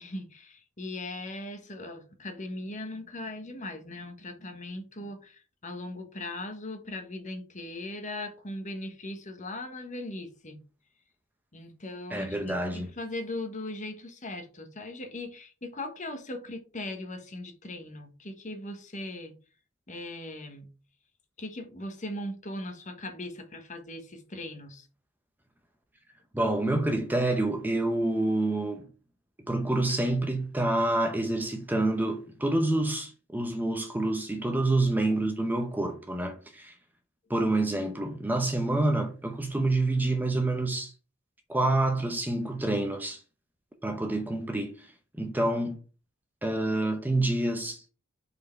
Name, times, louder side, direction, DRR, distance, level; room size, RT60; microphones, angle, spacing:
voice 1, 0.0-10.6 11.5-19.3 19.9-20.7 21.4-24.9, left 1 dB, 35° left, 1.3 m, -39 dB
voice 2, 12.1-12.9 26.3-28.9 29.5-36.7 37.3-40.9 41.5-43.2 43.8-44.9 45.2-45.8 46.4-47.8, right 2 dB, 10° right, 0.7 m, -27 dB
5.4 x 4.5 x 4.5 m
head